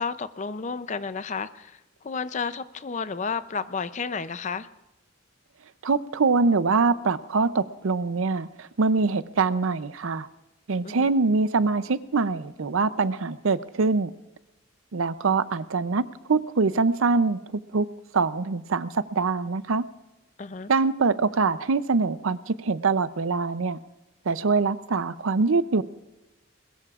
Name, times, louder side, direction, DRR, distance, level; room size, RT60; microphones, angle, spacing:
voice 1, 0.0-4.7 10.8-11.1 20.4-20.7, left 5 dB, 35° left, 13 dB, 0.5 m, -32 dB
voice 2, 5.8-10.3 10.7-14.1 14.9-16.0 16.3-17.9 18.1-19.8 20.7-23.8 24.3-25.8, right 4 dB, 80° right, 14 dB, 0.6 m, -24 dB
21.5 x 21.0 x 2.5 m, 0.98 s
head